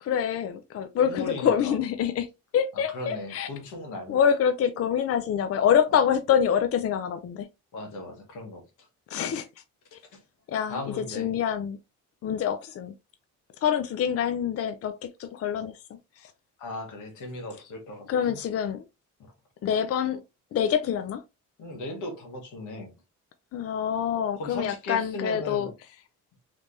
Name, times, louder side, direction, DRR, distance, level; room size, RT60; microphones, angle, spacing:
voice 1, 0.0-2.3 2.5-3.5 4.1-7.5 9.1-9.5 9.9-10.0 10.5-11.8 12.2-12.9 13.6-15.7 16.2-16.3 18.1-18.8 19.6-20.2 20.5-21.2 23.5-25.7, left 8 dB, 50° left, 0.5 m, -26 dB
voice 2, 1.0-1.7 2.7-4.2 7.7-8.6 10.7-11.3 16.6-18.4 21.6-22.9 24.4-25.7, left 2 dB, 90° left, 1.5 m, -37 dB
3.3 x 3.2 x 2.7 m
cardioid pair, 90°, 30 cm